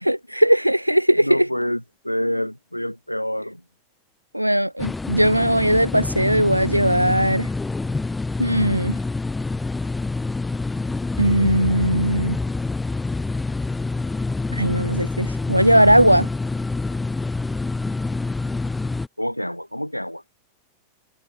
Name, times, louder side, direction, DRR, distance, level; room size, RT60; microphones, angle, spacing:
voice 1, 0.0-1.5 4.3-7.5 8.4-9.0 11.2-12.4 14.5-16.3, equal, 90° right, 0.5 m, -18 dB
voice 2, 1.2-3.6 19.2-20.2, equal, 90° left, 0.7 m, -27 dB
sound 1, 4.8-19.1, left 3 dB, 10° left, 0.8 m, -27 dB
figure-of-eight pair, 90°, 0 cm